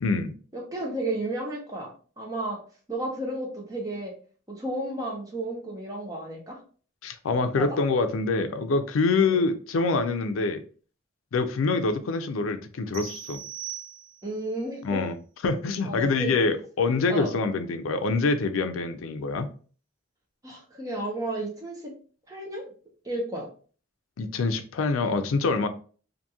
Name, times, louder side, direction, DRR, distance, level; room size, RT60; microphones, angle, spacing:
voice 1, 0.0-0.3 7.0-10.6 11.3-13.4 14.8-15.1 15.4-19.5 24.2-25.7, left 3 dB, 85° left, 9 dB, 0.4 m, -25 dB
voice 2, 0.5-2.6 2.9-4.2 4.5-6.6 7.6-7.8 9.2-9.4 14.2-15.0 15.8-16.4 17.1-17.3 20.4-21.9 22.3-22.7 23.0-23.5, right 1 dB, 15° right, -1 dB, 0.7 m, -32 dB
sound 1, 12.9-14.5, right 11 dB, 80° right, 1.0 m, -39 dB
2.9 x 2.5 x 2.3 m, 0.40 s
head